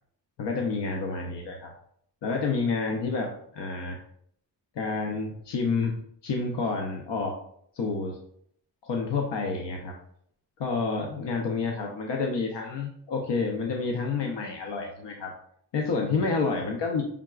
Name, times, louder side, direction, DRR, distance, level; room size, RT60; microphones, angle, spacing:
voice 1, 0.4-1.7 2.2-4.0 4.8-6.0 6.2-7.4 7.7-8.2 8.8-9.9 10.6-15.3 15.7-17.0, left 4 dB, 80° left, 1 dB, 0.7 m, -29 dB
5.7 x 3.6 x 2.3 m, 0.67 s
cardioid pair, 90°, 42 cm